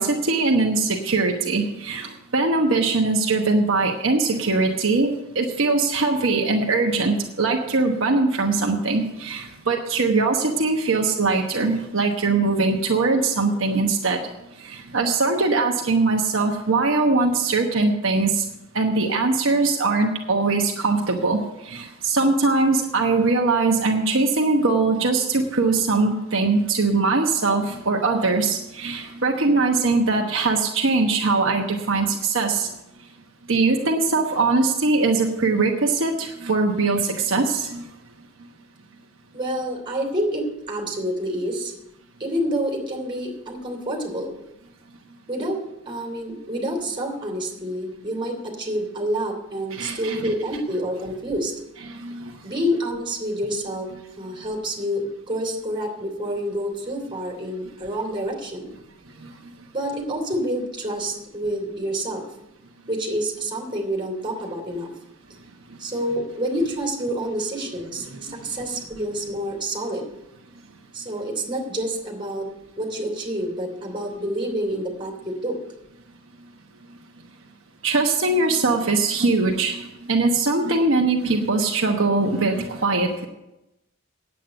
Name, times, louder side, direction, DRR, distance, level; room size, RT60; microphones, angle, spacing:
voice 1, 0.0-14.2 14.6-18.4 18.7-32.7 33.5-37.9 49.7-50.3 51.9-52.4 59.2-59.3 66.6-66.7 68.1-68.5 77.8-83.3, right 3 dB, 65° right, 1 dB, 1.1 m, -21 dB
voice 2, 39.3-41.7 42.2-44.4 45.3-51.5 52.4-58.7 59.7-62.2 62.9-64.9 65.8-70.1 70.9-72.5 72.8-75.6, equal, 25° right, 1 dB, 3.1 m, -28 dB
9.3 x 8.4 x 8.0 m, 0.92 s
head